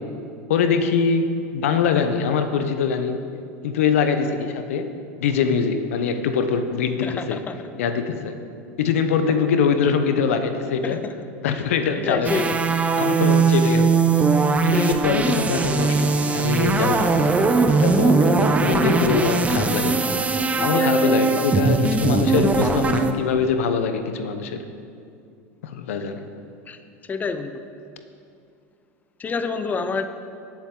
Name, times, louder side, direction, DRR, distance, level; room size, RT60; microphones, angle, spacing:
voice 1, 0.5-3.2 3.6-4.9 5.2-7.4 7.8-8.4 8.8-11.0 11.4-12.3 13.0-14.0 14.6-17.2 17.7-20.0 20.6-24.6 25.6-26.2, left 6 dB, 80° left, 8 dB, 0.9 m, -23 dB
voice 2, 7.0-7.5 10.8-11.1 11.9-12.6 14.7-14.9 20.6-21.8 26.7-26.8 27.1-27.6 29.2-30.1, left 4 dB, 25° left, 9 dB, 0.6 m, -28 dB
sound 1, 12.2-23.1, right 4 dB, 20° right, 0.8 m, -20 dB
18.0 x 7.4 x 3.8 m, 2.4 s
hypercardioid pair, 95°, 7 cm